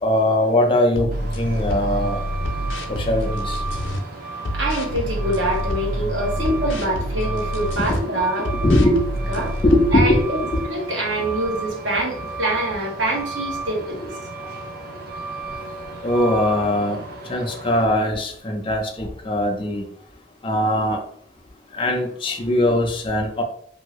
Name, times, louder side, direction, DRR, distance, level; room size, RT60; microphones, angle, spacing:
voice 1, 0.0-2.2 2.9-3.6 7.9-8.1 8.5-9.0 9.4-10.6 16.0-17.0 17.3-19.9 20.4-21.0 21.7-23.4, left 1 dB, 30° left, 1 dB, 0.5 m, -21 dB
sound 1, 0.9-4.0 4.4-8.0 8.4-10.2, equal, 85° left, 0.6 m, -27 dB
Truck, 1.1-17.8, right 3 dB, 55° right, 0.5 m, -34 dB
voice 2, 4.5-8.5 9.3-9.5 9.9-10.4 10.7-14.0, right 1 dB, 85° right, -2 dB, 1.1 m, -25 dB
2.7 x 2.6 x 3.0 m, 0.64 s
head